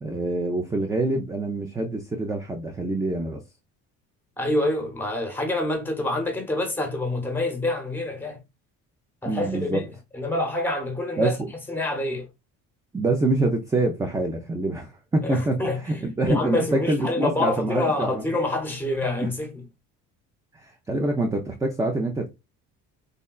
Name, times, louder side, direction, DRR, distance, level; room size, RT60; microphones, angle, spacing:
voice 1, 0.0-3.4 9.3-9.8 11.2-11.5 12.9-18.2 19.2-19.3 20.5-22.3, right 2 dB, 10° right, 0.4 m, -26 dB
voice 2, 4.4-8.4 9.2-11.4 11.7-12.3 15.2-19.6, left 2 dB, 5° left, 0.9 m, -27 dB
3.7 x 2.2 x 2.3 m
cardioid pair, 115°, 33 cm